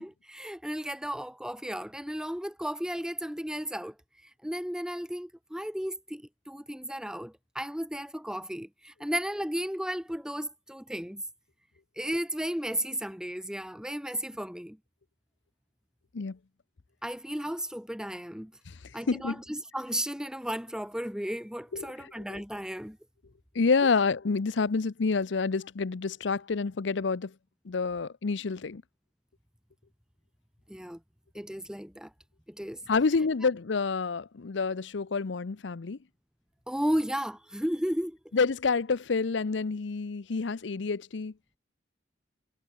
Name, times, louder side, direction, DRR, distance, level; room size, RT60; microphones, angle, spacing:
voice 1, 0.0-4.0 4.4-11.2 12.0-14.8 17.0-18.5 18.9-23.0 30.7-31.0 31.3-32.1 32.5-32.8 36.7-38.2, equal, 5° right, 2.0 m, -34 dB
voice 2, 19.1-19.4 21.7-21.9 23.5-27.3 27.7-28.8 32.9-36.0 38.3-41.3, left 4 dB, 75° left, 0.6 m, -28 dB
head